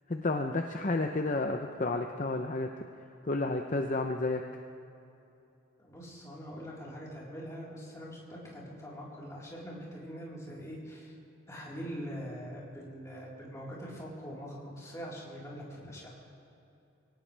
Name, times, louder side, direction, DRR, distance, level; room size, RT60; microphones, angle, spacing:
voice 1, 0.1-2.7 3.2-4.4, left 2 dB, 40° left, 4 dB, 0.6 m, -31 dB
voice 2, 5.8-11.1 11.5-16.2, equal, 15° left, -6 dB, 4.1 m, -43 dB
23.5 x 18.0 x 3.4 m, 2.8 s
head